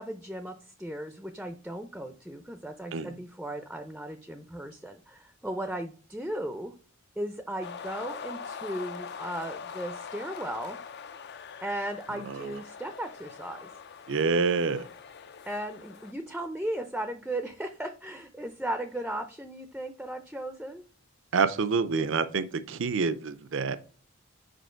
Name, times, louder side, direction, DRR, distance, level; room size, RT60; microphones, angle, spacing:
voice 1, 0.0-6.7 7.2-10.8 11.6-13.7 15.5-20.8, right 1 dB, 5° right, 7 dB, 0.5 m, -36 dB
sound 1, 7.6-16.1, left 6 dB, 55° left, 0.5 m, -43 dB
voice 2, 14.1-14.9 21.3-23.8, right 4 dB, 65° right, 12 dB, 0.6 m, -27 dB
5.2 x 4.2 x 4.4 m, 0.40 s
head